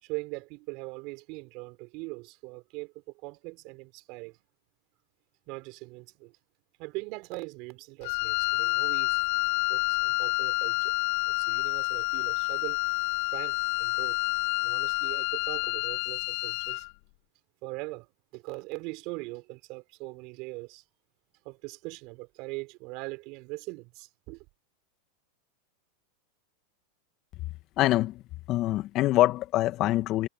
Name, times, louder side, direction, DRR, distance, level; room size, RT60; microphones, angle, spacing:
voice 1, 0.0-2.9 3.2-4.4 5.5-6.3 6.8-9.2 9.7-10.9 11.3-12.8 13.3-16.9 17.6-18.1 18.3-20.8 21.4-24.5, right 26 dB, 55° right, 4.3 m, -41 dB
Wind instrument woodwind instrument, 8.0-16.9, left 36 dB, 60° left, 1.9 m, -28 dB
voice 2, 27.8-28.2 28.5-30.3, left 16 dB, 45° left, 1.8 m, -24 dB
hypercardioid pair, 100°, 0 cm